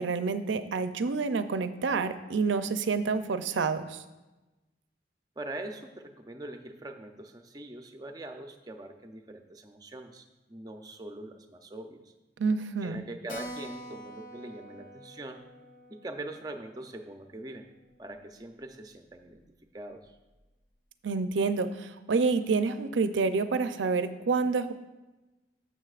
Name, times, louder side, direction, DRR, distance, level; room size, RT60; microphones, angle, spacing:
voice 1, 0.0-4.0 12.4-13.1 21.0-24.7, right 4 dB, 85° right, 11 dB, 0.5 m, -28 dB
voice 2, 5.4-12.0 12.8-15.5 15.9-17.7 18.0-19.4 19.7-20.2, right 2 dB, 20° right, 5 dB, 0.5 m, -42 dB
Keyboard (musical), 13.3-18.4 18.6-18.7 19.0-19.1 19.4-19.5 20.0-20.4, equal, 45° left, 0.6 m, -47 dB
12.5 x 7.1 x 2.4 m, 1.1 s
head